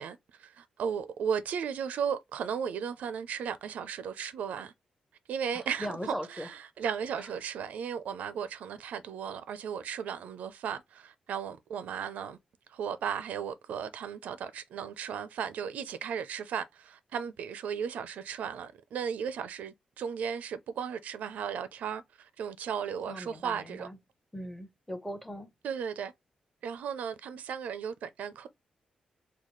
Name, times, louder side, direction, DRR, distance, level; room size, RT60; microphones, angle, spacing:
voice 1, 0.0-4.7 5.3-12.4 12.7-23.9 25.6-26.1 26.6-28.5, right 7 dB, 90° right, 0.5 m, -35 dB
voice 2, 5.5-6.5 23.1-24.0 24.3-25.5, equal, 5° left, 0.6 m, -39 dB
4.0 x 2.3 x 3.1 m
wide cardioid pair, 160°, 2 cm